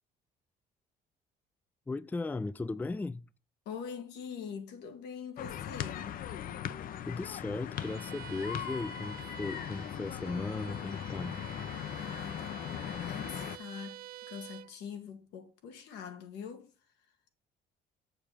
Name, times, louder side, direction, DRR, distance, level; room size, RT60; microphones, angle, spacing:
voice 1, 1.9-3.2 7.1-11.4, left 3 dB, 10° left, 0.4 m, -37 dB
voice 2, 3.7-6.2 12.0-14.0 14.3-16.7, left 7 dB, 90° left, 2.2 m, -43 dB
sound 1, 5.4-13.6, left 10 dB, 55° left, 0.7 m, -39 dB
Bowed string instrument, 7.7-14.8, right 14 dB, 65° right, 0.4 m, -49 dB
7.3 x 7.1 x 5.0 m
cardioid pair, 110°, 17 cm